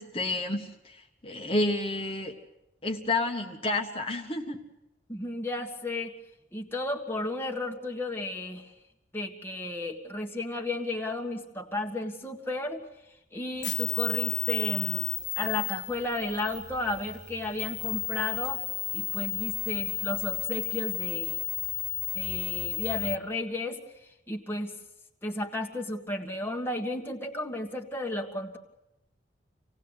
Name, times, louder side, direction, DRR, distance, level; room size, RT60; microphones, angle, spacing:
voice 1, 0.0-2.3 2.8-4.6, left 2 dB, 30° left, 2 dB, 1.5 m, -30 dB
voice 2, 5.1-6.1 6.5-8.7 9.1-12.8 13.3-15.1 15.4-18.6 18.9-21.4 22.1-23.8 24.3-24.7 25.2-28.6, left 2 dB, 15° left, 2 dB, 1.6 m, -33 dB
sound 1, 13.6-23.2, left 11 dB, 70° left, 1.8 m, -33 dB
26.5 x 18.5 x 8.1 m, 0.91 s
head